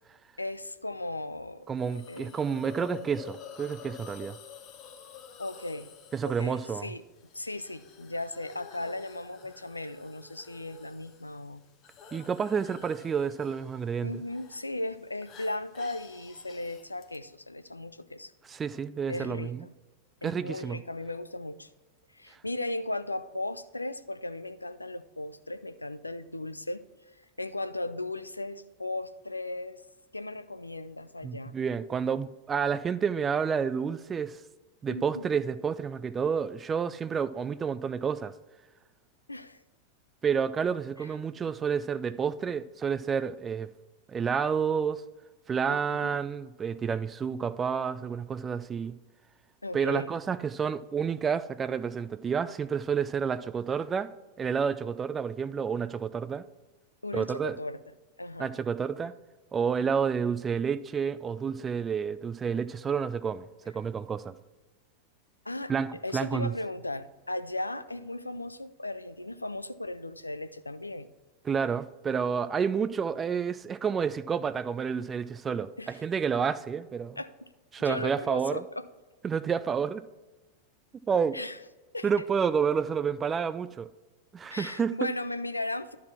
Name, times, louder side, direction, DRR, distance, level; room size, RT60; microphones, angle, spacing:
voice 1, 0.4-2.4 5.4-5.9 6.2-7.0 7.3-11.6 14.0-18.3 19.1-19.7 20.2-21.7 22.1-26.8 27.1-29.8 30.1-31.5 34.9-35.3 39.3-39.6 41.0-41.1 45.7-46.1 49.6-50.1 57.0-57.8 58.2-58.5 65.5-71.1 75.8-76.0 77.2-77.5 77.8-78.9 81.3-81.6 81.9-82.2 84.5-86.0, left 2 dB, 85° left, 0.4 m, -37 dB
voice 2, 1.7-4.4 6.1-6.9 12.1-14.2 18.5-19.6 20.2-20.8 31.2-34.4 34.8-38.3 40.2-43.7 44.1-45.0 45.5-49.0 49.7-54.1 54.4-56.5 57.1-57.6 58.4-59.1 59.5-64.3 65.7-66.5 71.5-77.2 77.7-78.6 79.2-80.0 81.1-81.4 82.0-83.9 84.3-84.9, right 6 dB, 20° right, 0.4 m, -30 dB
Hiss, 1.8-17.2, left 7 dB, 35° left, 0.9 m, -50 dB
12.0 x 4.1 x 4.4 m
figure-of-eight pair, 90°, 0 cm